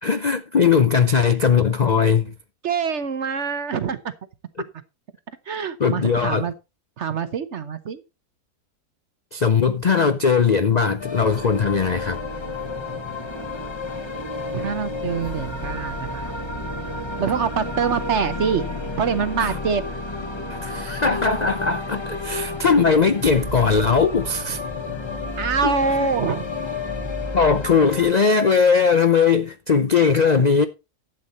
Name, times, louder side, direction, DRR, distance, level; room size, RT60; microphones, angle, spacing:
voice 1, 0.0-2.3 5.8-6.5 9.3-12.2 19.4-19.6 20.5-24.6 25.6-25.7 26.0-26.1 27.3-30.7, left 5 dB, 60° left, 0.4 m, -19 dB
voice 2, 2.6-4.0 5.5-6.5 7.0-8.0 14.5-16.3 17.2-18.6 19.0-19.8 25.4-26.5, right 6 dB, 50° right, 1.0 m, -25 dB
sound 1, 11.0-28.1, left 3 dB, 20° left, 1.1 m, -31 dB
11.5 x 8.1 x 4.1 m
omnidirectional pair, 1.7 m